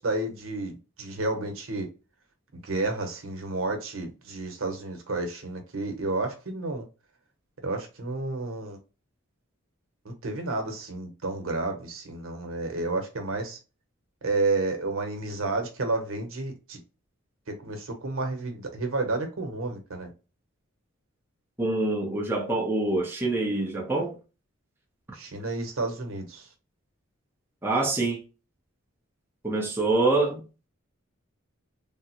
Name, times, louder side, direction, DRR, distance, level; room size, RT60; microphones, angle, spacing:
voice 1, 0.0-1.9 2.5-6.8 7.6-8.8 10.0-13.6 14.2-16.8 17.5-20.1 25.1-26.5, right 2 dB, 85° right, 0.9 m, -31 dB
voice 2, 21.6-24.2 27.6-28.2 29.4-30.4, right 2 dB, 10° right, 0.6 m, -25 dB
3.5 x 2.0 x 2.8 m
head